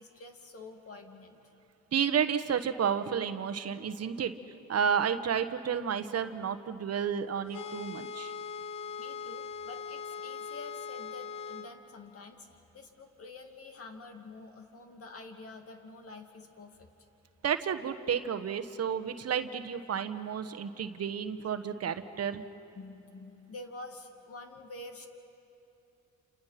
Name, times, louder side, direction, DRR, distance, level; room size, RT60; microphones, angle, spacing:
voice 1, 0.0-1.4 9.0-16.9 22.7-25.1, left 3 dB, 50° left, 4 dB, 2.6 m, -48 dB
voice 2, 1.9-4.4 4.7-8.3 17.4-22.4, right 7 dB, 55° right, 9 dB, 1.2 m, -31 dB
sound 1, 7.5-11.7, left 6 dB, 65° left, 1.2 m, -40 dB
29.5 x 28.5 x 5.9 m, 3.0 s
cardioid pair, 90°, 30 cm